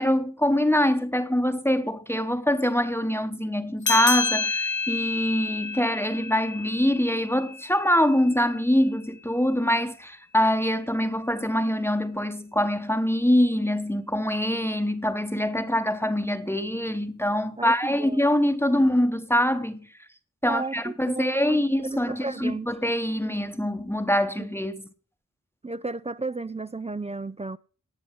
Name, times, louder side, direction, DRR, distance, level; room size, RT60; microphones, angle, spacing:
voice 1, 0.0-19.9 20.4-24.8, equal, 10° left, 1.0 m, -24 dB
sound 1, 3.8-8.7, left 4 dB, 75° left, 1.2 m, -30 dB
voice 2, 17.6-18.2 20.4-21.6 21.9-22.7 24.4-24.5 25.6-27.6, right 3 dB, 20° right, 0.4 m, -33 dB
18.5 x 6.9 x 3.7 m
wide cardioid pair, 65°, 30 cm